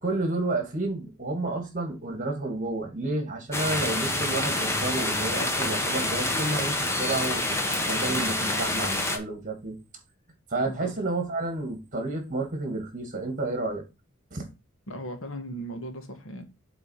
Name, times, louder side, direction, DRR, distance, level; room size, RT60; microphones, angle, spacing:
voice 1, 0.0-7.6 7.9-9.8 10.5-13.8 14.3-14.5, right 2 dB, 40° right, 2.5 m, -30 dB
sound 1, 3.5-9.2, left 1 dB, 15° left, 1.2 m, -27 dB
voice 2, 14.9-16.5, equal, 70° left, 1.6 m, -37 dB
8.0 x 4.0 x 5.7 m
head